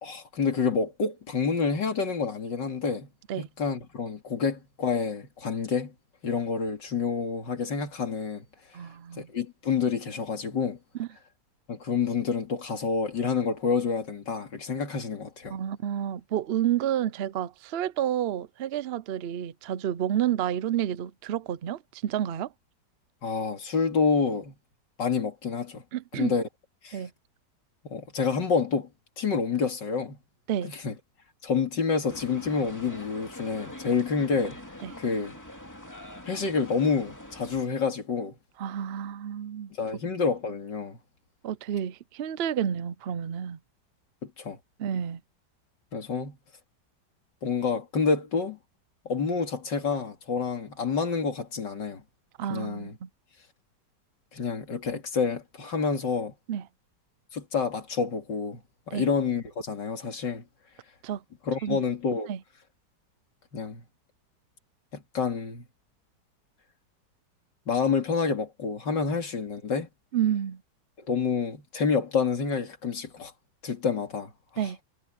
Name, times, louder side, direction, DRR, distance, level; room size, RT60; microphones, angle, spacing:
voice 1, 0.0-3.1 3.4-5.9 6.2-8.4 9.2-10.8 11.7-15.6 23.2-24.5 25.0-25.8 26.1-26.5 26.8-27.0 27.8-28.9 29.2-30.2 30.6-30.9 31.4-34.6 35.0-35.4 36.2-38.3 39.8-41.0 44.2-44.6 45.9-46.4 47.4-48.6 49.0-52.0 52.5-53.0 54.3-56.3 57.3-58.6 58.9-60.4 61.5-62.3 63.5-63.8 64.9-65.6 67.7-69.9 71.1-73.3 73.6-74.7, left 5 dB, 85° left, 3.3 m, -28 dB
voice 2, 8.7-9.3 11.0-11.1 15.5-22.5 25.9-26.4 26.9-27.1 30.5-30.7 34.8-34.9 38.6-39.7 41.4-43.6 44.8-45.2 52.4-53.1 56.5-56.6 58.9-59.1 61.0-61.2 61.6-61.8 62.3-62.4 70.1-70.6 74.6-74.8, right 10 dB, 65° right, 0.6 m, -30 dB
sound 1, 32.1-37.6, left 1 dB, 10° left, 2.3 m, -44 dB
omnidirectional pair, 1.9 m